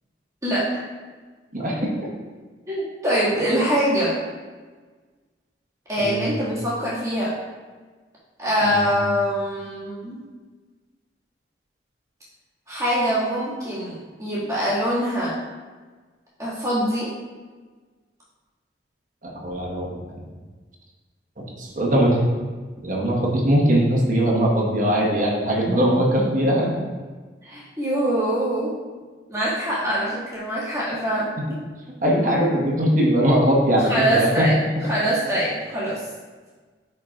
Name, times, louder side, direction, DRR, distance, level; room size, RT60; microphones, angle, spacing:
voice 1, 1.5-2.1 6.0-6.4 8.6-8.9 19.2-20.2 21.6-22.2 22.8-26.7 32.0-34.4, equal, 50° right, -3 dB, 1.4 m, -21 dB
voice 2, 2.7-4.1 5.9-7.3 8.4-10.2 12.7-13.9 14.2-15.3 16.4-17.1 27.5-28.7 29.3-31.3 33.9-34.6 34.9-36.0, equal, 20° right, -10 dB, 2.0 m, -23 dB
9.4 x 4.6 x 2.4 m, 1.4 s
head